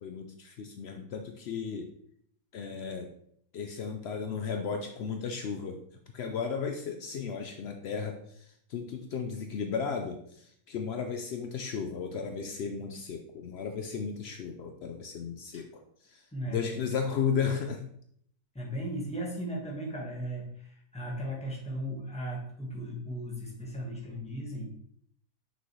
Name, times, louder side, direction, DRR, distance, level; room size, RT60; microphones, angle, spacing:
voice 1, 0.0-1.9 2.5-3.1 3.5-5.8 6.1-17.8, left 6 dB, 85° left, 5 dB, 0.5 m, -35 dB
voice 2, 16.3-16.8 18.5-24.7, equal, 5° left, -3 dB, 1.3 m, -37 dB
6.1 x 5.4 x 3.1 m, 0.66 s
omnidirectional pair, 1.8 m